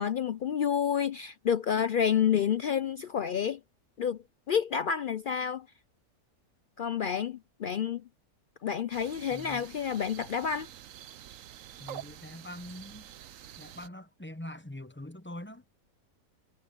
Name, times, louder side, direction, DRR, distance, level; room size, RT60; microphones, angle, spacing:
voice 1, 0.0-3.6 4.0-5.7 6.8-8.0 8.6-10.7, left 8 dB, 85° left, 0.4 m, -29 dB
sound 1, 8.9-13.9, right 11 dB, 65° right, 1.0 m, -47 dB
voice 2, 9.3-9.7 11.8-13.1 13.6-15.6, left 1 dB, 10° left, 0.8 m, -43 dB
omnidirectional pair, 1.6 m